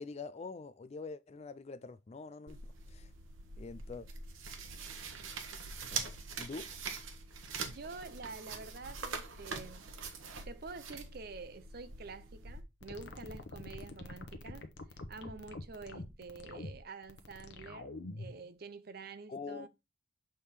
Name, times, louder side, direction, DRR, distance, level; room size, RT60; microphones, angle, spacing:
voice 1, 0.0-2.6 2.9-3.1 3.6-4.1 5.9-6.7 19.3-19.7, left 4 dB, 30° left, 0.3 m, -45 dB
sound 1, 2.5-12.6, right 5 dB, 85° right, 1.1 m, -44 dB
voice 2, 7.6-9.9 10.4-14.7 15.1-19.7, right 4 dB, 50° right, 0.6 m, -48 dB
sound 2, 12.8-18.4, left 2 dB, 60° left, 0.9 m, -46 dB
6.6 x 3.6 x 4.3 m
head